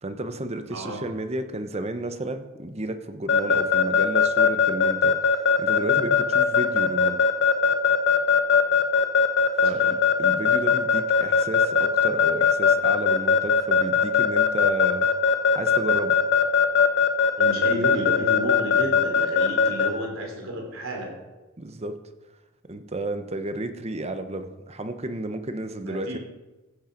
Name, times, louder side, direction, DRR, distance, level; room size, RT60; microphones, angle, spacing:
voice 1, 0.0-7.2 9.6-15.1 15.5-16.2 21.6-22.0 22.6-26.2, right 2 dB, 30° right, 9 dB, 0.9 m, -32 dB
voice 2, 0.7-1.0 9.6-9.8 17.4-21.1 25.8-26.2, equal, 90° right, 1 dB, 3.3 m, -32 dB
Keyboard (musical) / Alarm, 3.3-19.9, left 6 dB, 60° left, 0.9 m, -19 dB
15.0 x 8.6 x 5.2 m, 1.1 s
head